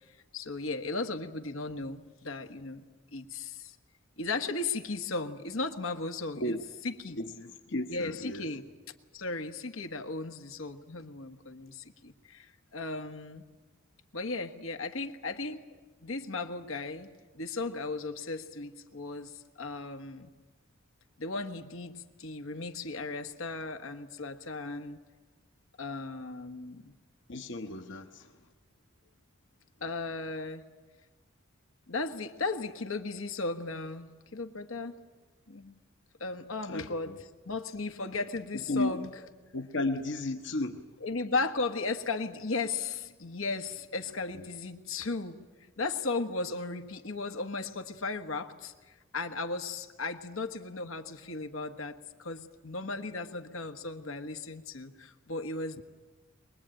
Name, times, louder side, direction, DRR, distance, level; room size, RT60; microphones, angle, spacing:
voice 1, 0.3-2.8 3.1-3.7 4.2-6.5 6.8-7.2 7.9-8.6 9.1-13.4 14.1-15.6 16.0-20.3 21.2-25.0 25.8-26.9 29.8-30.6 31.9-35.0 35.5-35.8 36.2-37.1 37.4-39.1 41.0-45.4 45.8-55.8, left 3 dB, 90° left, 6 dB, 1.5 m, -36 dB
voice 2, 7.2-8.5 27.3-28.3 36.7-37.2 38.7-39.0 39.5-40.8, left 2 dB, 60° left, 5 dB, 1.0 m, -34 dB
23.5 x 21.0 x 9.0 m, 1.3 s
head